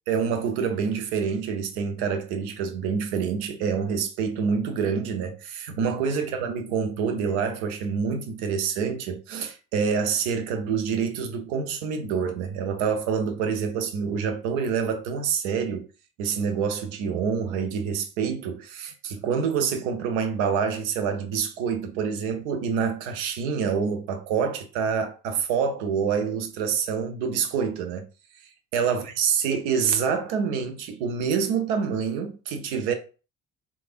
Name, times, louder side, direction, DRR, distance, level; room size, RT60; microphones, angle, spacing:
voice 1, 0.1-15.9 16.2-28.1 28.4-32.9, right 6 dB, 65° right, 0.6 m, -27 dB
3.2 x 2.2 x 2.4 m
figure-of-eight pair, 45°, 39 cm